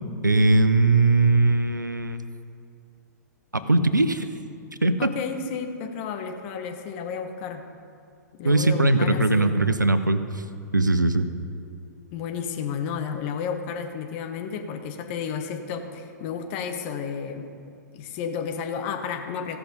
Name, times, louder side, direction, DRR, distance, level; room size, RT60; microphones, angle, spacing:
voice 1, 0.2-2.2 3.5-4.3 4.8-5.1 8.4-10.4 10.7-11.3, right 2 dB, 90° right, 11 dB, 0.7 m, -20 dB
voice 2, 5.0-7.6 8.4-9.6 12.1-17.5 17.9-19.6, left 6 dB, 40° left, 5 dB, 1.3 m, -32 dB
16.0 x 5.9 x 5.4 m, 2.4 s
figure-of-eight pair, 105°, 10 cm